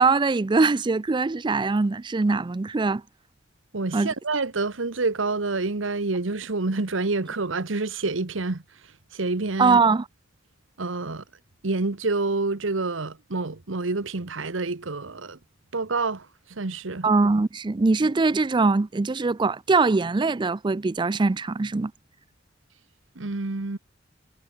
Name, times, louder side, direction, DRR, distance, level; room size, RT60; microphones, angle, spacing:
voice 1, 0.0-3.0 3.9-4.1 9.6-10.0 17.0-21.9, right 3 dB, 25° right, 0.4 m, -22 dB
voice 2, 3.7-8.6 9.1-9.8 10.8-11.2 11.6-15.4 15.7-17.1 23.1-23.8, right 3 dB, 85° right, 1.2 m, -28 dB
head